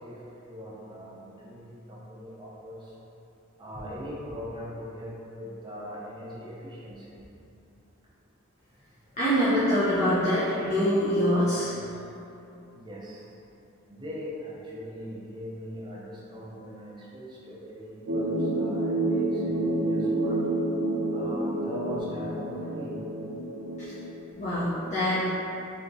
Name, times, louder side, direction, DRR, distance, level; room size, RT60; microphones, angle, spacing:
voice 1, 0.0-2.9 3.6-7.2 12.7-13.3 13.9-20.4 21.1-23.0, equal, 20° right, -6 dB, 0.6 m, -41 dB
voice 2, 9.2-11.7 23.8-23.9 24.4-25.3, equal, 35° left, -11 dB, 0.5 m, -24 dB
sound 1, 18.1-24.3, right 1 dB, 85° right, 0.5 m, -29 dB
3.4 x 2.8 x 2.6 m, 2.9 s
head